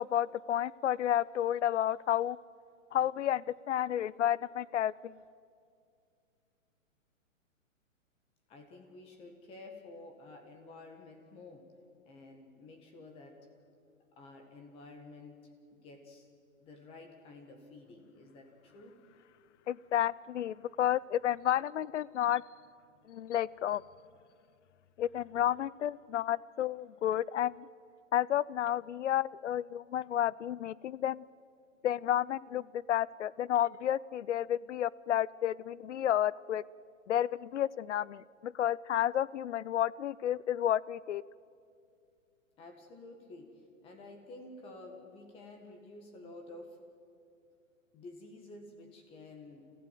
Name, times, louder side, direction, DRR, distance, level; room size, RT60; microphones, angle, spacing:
voice 1, 0.0-2.4 2.9-5.1 19.7-22.4 23.1-23.8 25.0-27.7 28.1-31.2 31.8-36.6 37.1-41.2, left 11 dB, 60° left, 22 dB, 0.6 m, -31 dB
voice 2, 8.5-11.7 12.1-13.4 14.1-16.3 16.6-19.0 42.6-46.8 47.9-49.7, left 2 dB, 15° left, 4 dB, 1.7 m, -51 dB
28.0 x 15.5 x 9.3 m, 2.4 s
hypercardioid pair, 170°, 41 cm